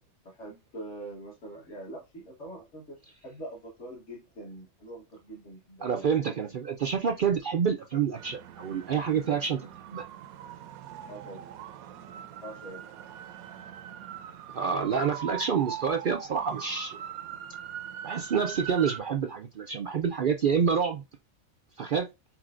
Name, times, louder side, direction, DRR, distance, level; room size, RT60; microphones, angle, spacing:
voice 1, 0.2-3.0 3.2-6.2 11.0-11.4 12.4-13.1, right 1 dB, 55° left, 1.5 m, -44 dB
voice 2, 5.8-9.6 9.9-10.1 14.5-17.0 18.0-21.0 21.8-22.1, right 6 dB, 70° right, 0.5 m, -27 dB
sound 1, 8.2-19.0, right 10 dB, 85° right, 1.0 m, -42 dB
4.6 x 4.1 x 2.4 m
omnidirectional pair, 1.4 m